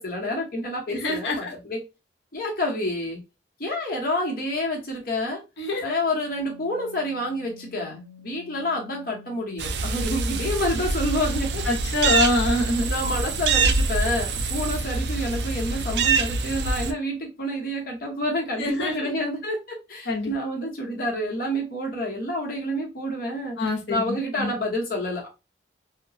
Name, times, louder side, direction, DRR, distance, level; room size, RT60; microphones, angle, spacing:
voice 1, 0.0-1.8 2.3-3.2 3.6-5.4 5.8-11.6 12.0-12.3 12.8-23.6 23.9-25.3, left 1 dB, 50° left, 0.9 m, -28 dB
voice 2, 0.9-1.5 5.6-6.0 11.7-12.9 18.6-19.2 20.1-20.3 23.6-24.5, left 2 dB, 75° left, 0.8 m, -25 dB
Organ, 6.0-16.6, left 7 dB, 50° right, 0.8 m, -49 dB
sound 1, 9.6-16.9, right 4 dB, 65° right, 0.4 m, -25 dB
2.8 x 2.2 x 2.6 m
head